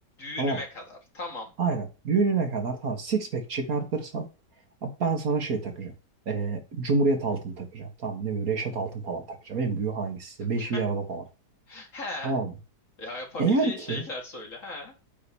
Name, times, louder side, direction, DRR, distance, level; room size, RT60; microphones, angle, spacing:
voice 1, 0.2-1.5 10.6-10.8 11.7-12.4 13.0-14.9, left 2 dB, 50° left, 2.5 m, -37 dB
voice 2, 1.6-4.3 4.8-5.9 6.3-11.2 12.2-12.5 13.4-14.0, right 4 dB, 55° right, 1.9 m, -28 dB
8.6 x 3.9 x 6.9 m
omnidirectional pair, 1.8 m